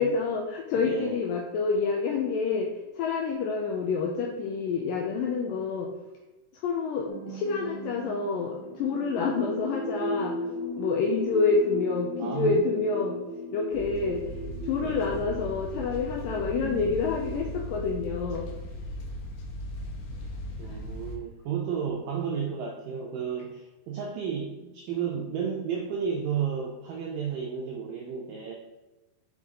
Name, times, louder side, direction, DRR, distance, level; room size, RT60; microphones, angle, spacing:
voice 1, 0.0-5.9 6.5-10.4 10.8-13.2 13.5-18.5 20.7-20.8, left 4 dB, 90° left, 0 dB, 1.9 m, -28 dB
voice 2, 0.8-1.2 12.2-12.6 14.8-15.1 20.6-28.6, right 7 dB, 85° right, 1 dB, 1.9 m, -32 dB
sound 1, 7.1-16.9, equal, 70° right, 1.9 m, -37 dB
sound 2, 13.7-21.2, equal, 70° left, 2.5 m, -38 dB
5.9 x 5.4 x 3.6 m, 1.1 s
omnidirectional pair, 4.7 m